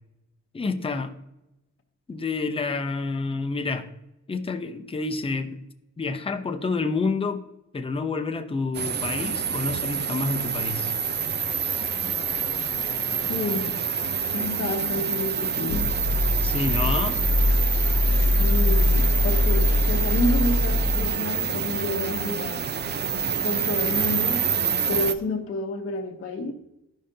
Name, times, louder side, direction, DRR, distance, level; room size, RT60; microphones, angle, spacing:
voice 1, 0.5-1.1 2.1-3.9 4.3-5.6 6.0-7.4 7.7-10.9 16.4-17.2, left 4 dB, 20° left, 0.6 m, -28 dB
sound 1, 8.7-25.1, right 7 dB, 35° right, 0.4 m, -27 dB
voice 2, 13.3-13.8 14.3-15.9 18.1-22.7 23.4-24.5 24.9-26.5, left 2 dB, 45° left, 0.9 m, -29 dB
sound 2, 15.7-21.1, left 2 dB, 70° left, 0.6 m, -22 dB
12.5 x 5.1 x 2.7 m
cardioid pair, 125°, 30 cm